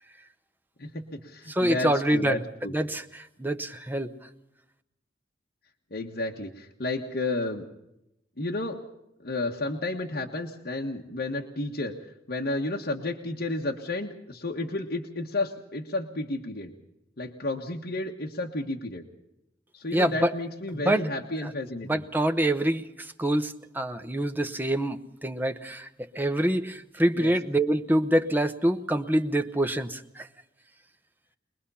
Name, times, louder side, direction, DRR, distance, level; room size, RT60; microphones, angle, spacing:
voice 1, 0.8-2.7 5.9-7.7 8.4-8.8 9.2-11.9 12.3-16.7 17.2-19.0 19.7-22.0 27.2-27.3, left 2 dB, 60° left, 0 dB, 1.6 m, -32 dB
voice 2, 1.5-2.4 2.7-4.1 19.9-20.3 20.8-21.1 21.4-21.5 21.8-25.9 26.1-30.3, right 1 dB, 10° right, 8 dB, 0.9 m, -26 dB
23.5 x 20.0 x 5.7 m, 0.85 s
head